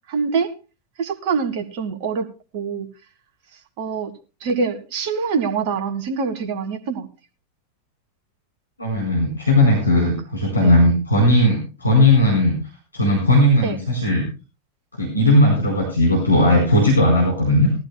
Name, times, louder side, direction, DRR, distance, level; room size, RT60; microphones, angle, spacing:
voice 1, 0.1-0.5 1.0-2.3 2.5-2.9 3.5-4.1 4.4-7.1 10.6-10.8 13.6-13.8, right 5 dB, 45° right, 1.6 m, -25 dB
voice 2, 8.8-12.6 12.9-14.3 15.0-17.7, left 1 dB, 80° left, 4.3 m, -17 dB
19.5 x 14.0 x 2.3 m
figure-of-eight pair, 90°, 0 cm